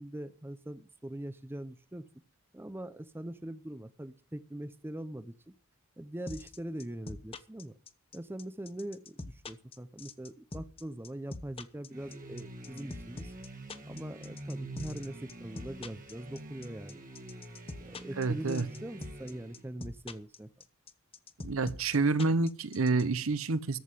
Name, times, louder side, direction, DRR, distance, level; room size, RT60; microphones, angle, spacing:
voice 1, 0.0-2.1 2.5-5.5 6.0-7.8 8.1-13.3 13.9-17.0 17.8-20.5, right 1 dB, 10° right, 0.6 m, -42 dB
sound 1, 6.3-23.0, left 2 dB, 25° left, 0.9 m, -43 dB
sound 2, 11.9-19.7, right 1 dB, 40° right, 1.6 m, -46 dB
voice 2, 18.2-18.7 21.4-23.8, right 3 dB, 70° right, 0.8 m, -28 dB
14.0 x 5.7 x 8.1 m
head